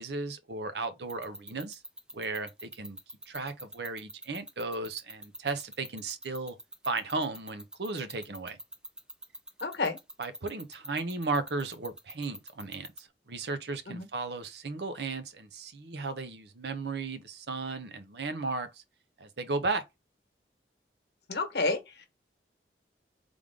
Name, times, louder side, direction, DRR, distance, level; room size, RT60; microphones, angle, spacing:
voice 1, 0.0-1.8 2.1-3.0 3.3-6.6 6.9-8.6 10.2-18.8 19.2-19.8, right 3 dB, 70° right, 0.7 m, -35 dB
sound 1, 1.1-13.0, right 1 dB, 5° right, 0.4 m, -43 dB
voice 2, 9.6-10.0 13.9-14.1 21.3-22.1, left 3 dB, 70° left, 1.1 m, -30 dB
3.7 x 3.5 x 3.5 m
head